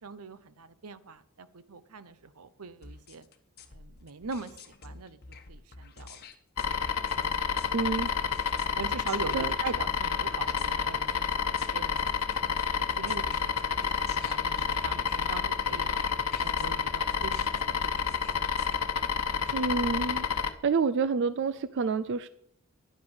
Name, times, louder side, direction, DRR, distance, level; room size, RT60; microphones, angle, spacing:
voice 1, 0.0-3.2 3.7-4.6 4.8-5.2 5.5-6.2 7.1-7.8 8.3-8.4 8.8-12.2 13.0-16.0 16.4-18.3 19.3-19.6, right 4 dB, 85° right, 14 dB, 0.8 m, -42 dB
sound 1, 2.8-18.8, left 3 dB, 45° left, 1.2 m, -49 dB
sound 2, 6.6-20.5, left 6 dB, 90° left, 0.9 m, -29 dB
voice 2, 7.7-8.1 9.3-9.5 19.5-20.3 20.6-22.3, right 5 dB, 55° right, 15 dB, 0.4 m, -28 dB
11.0 x 8.6 x 6.3 m, 0.67 s
head